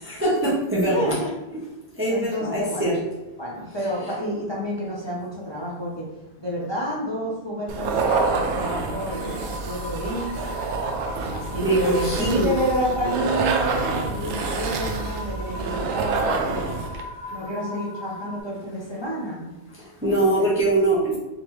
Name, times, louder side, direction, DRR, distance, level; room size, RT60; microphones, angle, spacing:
voice 1, 0.0-1.1 2.0-3.0 11.2-11.3 11.6-12.5 17.3-17.4 19.8-21.2, right 2 dB, 10° right, -6 dB, 0.8 m, -23 dB
voice 2, 0.7-1.3 2.1-2.9 3.4-6.1 6.4-10.7 11.3-16.7 17.3-19.5 20.0-20.5, equal, 25° left, -6 dB, 1.0 m, -29 dB
sound 1, 7.7-17.0, right 4 dB, 85° right, 0.9 m, -27 dB
sound 2, 8.2-18.4, left 2 dB, 55° left, 0.7 m, -38 dB
3.9 x 3.3 x 3.1 m, 1.1 s
omnidirectional pair, 1.2 m